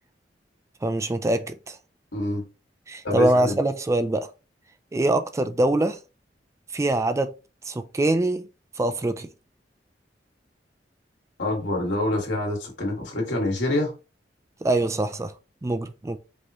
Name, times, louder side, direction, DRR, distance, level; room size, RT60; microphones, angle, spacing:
voice 1, 0.8-1.8 2.9-4.3 4.9-6.0 6.7-7.3 7.7-8.5 8.8-9.3 14.6-15.3 15.6-16.2, right 2 dB, 15° right, 0.3 m, -24 dB
voice 2, 2.1-2.4 3.0-3.6 11.4-13.9, left 1 dB, 85° left, 1.9 m, -26 dB
5.3 x 3.0 x 3.0 m
head